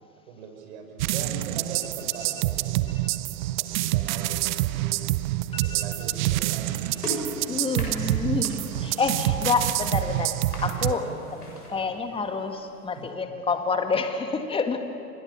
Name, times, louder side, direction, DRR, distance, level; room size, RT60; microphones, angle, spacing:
voice 1, 0.3-3.0 3.6-5.0 5.6-6.9 9.2-9.3 10.9-11.2 11.7-11.9 12.9-13.1, right 5 dB, 50° right, 3 dB, 6.3 m, -40 dB
sound 1, 1.0-10.9, right 17 dB, 30° right, 0.6 m, -27 dB
voice 2, 5.5-5.8 7.5-11.1 11.7-14.8, left 4 dB, 10° left, 7 dB, 1.9 m, -28 dB
sound 2, 6.5-11.7, left 1 dB, 85° left, 7.5 m, -39 dB
sound 3, 7.4-13.1, right 1 dB, 40° left, 5.5 m, -54 dB
30.0 x 26.5 x 7.2 m, 2.7 s
figure-of-eight pair, 105°, 46 cm